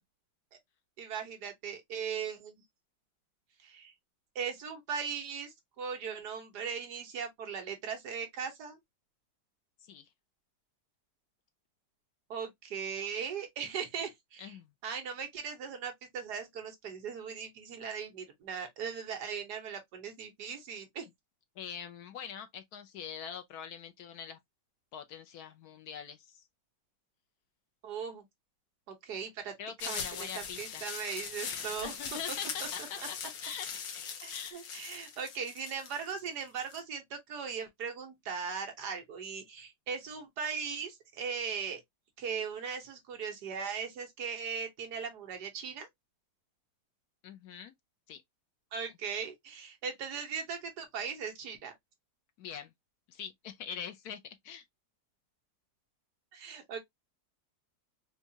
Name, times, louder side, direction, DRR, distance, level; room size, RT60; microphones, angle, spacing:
voice 1, 1.0-2.5 3.6-3.9 4.3-8.8 12.3-14.6 14.8-21.1 27.8-28.2 29.0-29.5 29.8-32.2 32.6-32.7 33.0-33.1 34.2-41.8 42.2-45.9 48.7-51.7 56.3-56.8, right 6 dB, 65° right, 1.4 m, -39 dB
voice 2, 14.4-14.7 21.6-24.4 24.9-26.4 29.6-30.8 31.8-33.2 33.4-33.7 34.3-34.6 47.2-47.7 48.1-48.2 52.4-52.7 53.1-54.2 54.4-54.6, left 8 dB, 70° left, 1.0 m, -43 dB
sound 1, 29.8-36.8, left 7 dB, 90° left, 1.6 m, -40 dB
4.4 x 2.4 x 2.7 m
omnidirectional pair, 2.0 m